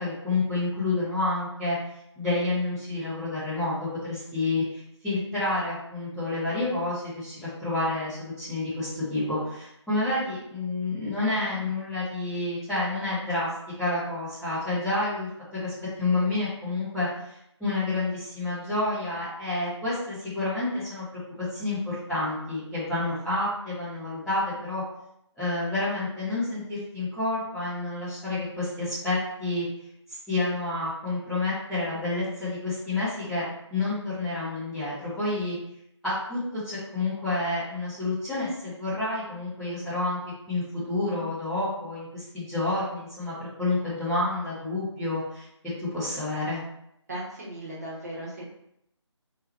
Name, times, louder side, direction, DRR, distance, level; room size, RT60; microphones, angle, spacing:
voice 1, 0.0-1.8 2.2-13.5 13.8-15.7 16.0-24.8 25.4-29.6 30.1-35.6 36.0-40.2 40.5-45.5 45.9-46.6, left 2 dB, ahead, -20 dB, 0.4 m, -29 dB
voice 2, 47.1-48.4, right 1 dB, 35° right, -5 dB, 1.1 m, -37 dB
3.1 x 2.9 x 4.0 m, 0.77 s
figure-of-eight pair, 180°, 16 cm